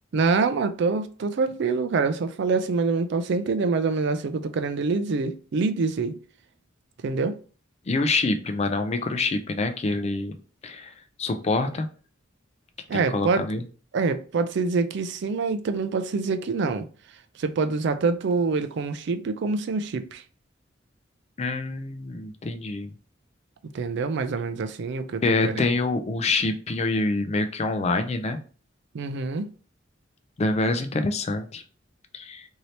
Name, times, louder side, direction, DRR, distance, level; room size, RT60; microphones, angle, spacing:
voice 1, 0.1-6.1 7.0-7.4 12.9-13.4 13.9-16.9 17.4-20.2 23.7-25.6 28.9-29.5, right 4 dB, 65° right, 0.4 m, -25 dB
voice 2, 7.9-10.4 10.6-10.9 11.2-11.9 12.9-13.6 21.4-22.9 25.2-28.4 30.4-31.6 32.1-32.4, left 3 dB, 35° left, 0.4 m, -26 dB
2.7 x 2.7 x 3.1 m
head